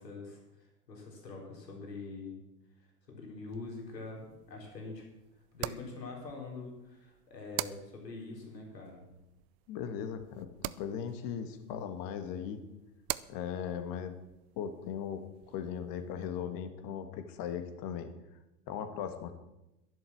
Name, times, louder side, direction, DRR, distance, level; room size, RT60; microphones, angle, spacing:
voice 1, 0.0-2.4 2.8-5.0 5.5-9.1, left 3 dB, 85° left, -1 dB, 4.4 m, -44 dB
sound 1, 3.5-16.3, right 18 dB, 40° right, 0.5 m, -46 dB
voice 2, 9.7-10.5 10.8-12.6 13.3-14.2 14.6-18.1 18.7-19.3, left 8 dB, 45° left, 8 dB, 1.8 m, -38 dB
11.0 x 11.0 x 7.2 m, 0.94 s
hypercardioid pair, 100°, 48 cm